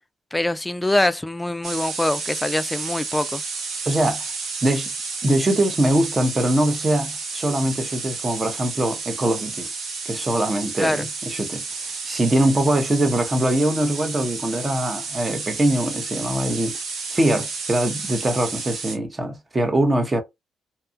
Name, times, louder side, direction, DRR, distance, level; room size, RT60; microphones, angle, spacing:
voice 1, 0.3-3.4 10.8-11.1, left 1 dB, 10° left, 0.3 m, -23 dB
sound 1, 1.6-19.0, right 4 dB, 65° right, 0.8 m, -31 dB
voice 2, 3.9-4.2 4.6-4.9 5.2-9.7 10.1-11.6 12.1-16.8 17.1-20.2, right 1 dB, 25° right, 0.7 m, -22 dB
2.8 x 2.2 x 2.6 m
cardioid pair, 90°, 0 cm